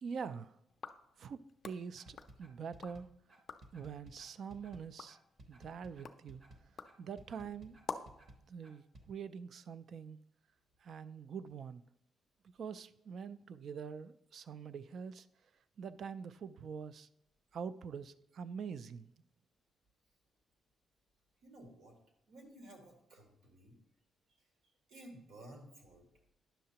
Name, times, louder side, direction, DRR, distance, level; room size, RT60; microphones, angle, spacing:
voice 1, 0.0-0.6 1.2-1.4 1.6-3.1 3.7-5.2 5.5-6.7 7.0-7.8 8.5-10.2 10.8-11.8 12.6-15.3 15.8-17.1 17.5-19.1, right 6 dB, 50° right, 15 dB, 0.3 m, -45 dB
sound 1, 0.7-3.0 3.3-3.8 4.3-8.3, left 5 dB, 40° left, 0.4 m, -50 dB
sound 2, 2.0-9.1, right 1 dB, 35° right, 0.8 m, -58 dB
voice 2, 21.4-22.0 22.3-23.8 24.9-26.1, right 1 dB, 75° right, 2 dB, 1.7 m, -55 dB
10.0 x 6.6 x 2.8 m, 0.77 s
cardioid pair, 155°, 0 cm